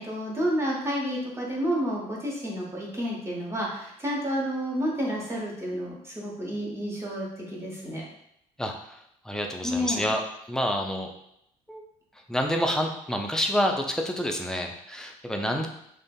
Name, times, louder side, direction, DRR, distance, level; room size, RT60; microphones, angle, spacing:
voice 1, 0.0-8.0 9.6-10.0, equal, 15° right, -4 dB, 0.8 m, -30 dB
voice 2, 9.3-10.2 10.5-11.1 11.7-11.8 12.3-15.7, equal, 5° left, 2 dB, 0.3 m, -28 dB
2.4 x 2.3 x 2.2 m, 0.75 s
figure-of-eight pair, 50°, 20 cm